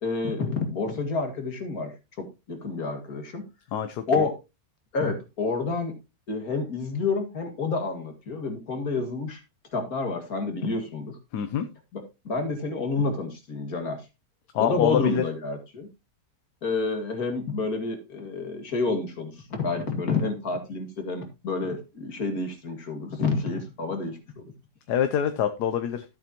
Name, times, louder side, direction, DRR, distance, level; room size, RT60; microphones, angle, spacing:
voice 1, 0.0-3.4 4.1-4.3 4.9-5.9 6.3-9.4 9.7-11.2 11.9-14.0 14.6-15.9 16.6-24.5, left 3 dB, 55° left, 2.5 m, -29 dB
voice 2, 3.7-4.0 11.3-11.7 14.5-15.2 24.9-26.0, left 9 dB, 75° left, 1.3 m, -25 dB
13.0 x 8.0 x 2.9 m
omnidirectional pair, 1.8 m